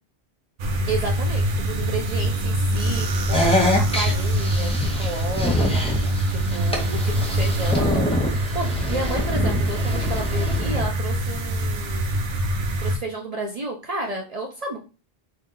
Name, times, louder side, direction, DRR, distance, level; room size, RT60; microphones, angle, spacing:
sound 1, 0.6-13.0, right 1 dB, 75° right, 0.8 m, -24 dB
voice 1, 0.9-5.8 6.3-12.1 12.8-14.8, right 2 dB, 50° right, 0 dB, 0.5 m, -32 dB
sound 2, 3.3-10.8, left 1 dB, 10° left, 0.4 m, -25 dB
2.8 x 2.0 x 3.6 m, 0.31 s
omnidirectional pair, 1.0 m